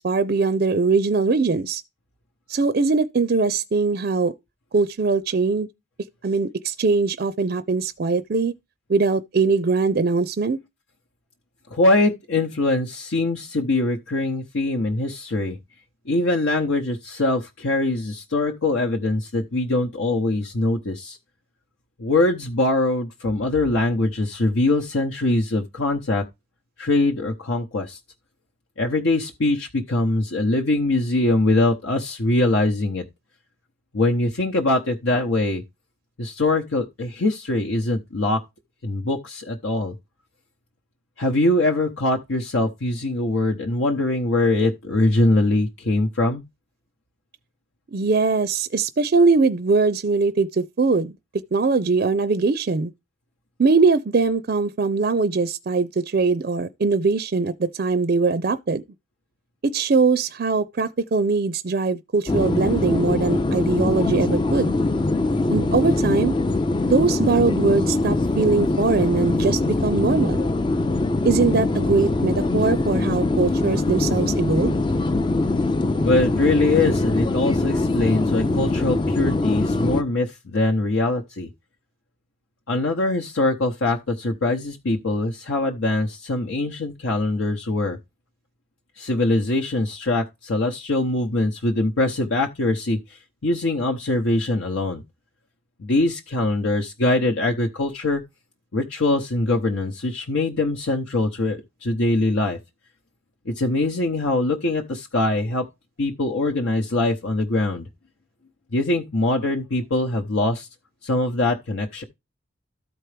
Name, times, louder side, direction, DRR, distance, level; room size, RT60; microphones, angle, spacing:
voice 1, 0.0-1.8 2.5-4.3 4.7-5.7 6.2-8.5 8.9-10.6 47.9-51.1 51.5-52.9 53.6-58.8 59.7-64.7 65.5-66.4 66.9-70.5 71.2-74.8, right 4 dB, 45° right, 0.4 m, -21 dB
voice 2, 11.7-15.6 16.1-21.2 22.0-26.2 26.8-28.0 28.8-33.0 33.9-35.6 36.2-38.4 38.8-39.9 41.2-46.4 76.0-81.5 82.7-88.0 89.0-95.0 95.8-98.2 98.7-102.6 103.5-105.7 106.0-107.9 108.7-110.7 111.0-112.0, left 2 dB, 75° left, 0.9 m, -22 dB
sound 1, 62.3-80.0, left 2 dB, 25° left, 0.4 m, -22 dB
13.5 x 4.5 x 3.3 m
head